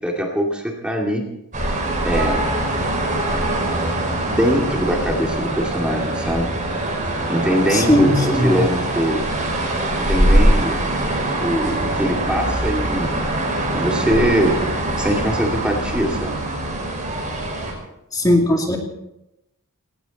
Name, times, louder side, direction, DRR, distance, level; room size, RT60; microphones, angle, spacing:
voice 1, 0.0-1.2 2.0-2.5 4.2-6.6 7.3-9.3 10.0-10.8 11.4-13.1 13.7-14.6 15.0-16.3, equal, 5° right, -1 dB, 2.2 m, -22 dB
sound 1, 1.5-17.7, right 1 dB, 35° right, 5.3 m, -22 dB
voice 2, 7.7-8.6 18.1-18.8, left 1 dB, 15° left, 1 dB, 2.4 m, -17 dB
19.0 x 18.5 x 4.1 m, 0.86 s
head